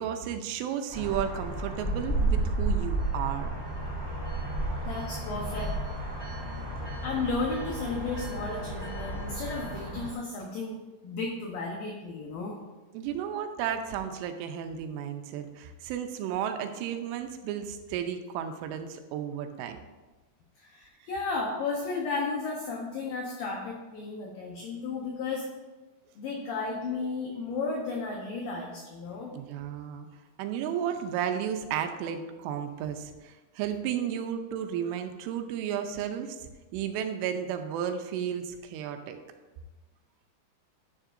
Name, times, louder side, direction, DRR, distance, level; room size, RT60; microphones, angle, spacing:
voice 1, 0.0-3.5 12.9-19.8 29.3-30.1 30.4-36.4 36.7-39.2, right 9 dB, 90° right, 6 dB, 3.2 m, -33 dB
sound 1, 0.9-10.1, right 2 dB, 10° right, 1.5 m, -32 dB
voice 2, 4.8-5.7 7.0-12.6 20.6-25.4 26.2-29.3, left 3 dB, 80° left, -1 dB, 2.0 m, -34 dB
10.5 x 10.0 x 2.6 m, 1.2 s
omnidirectional pair, 5.5 m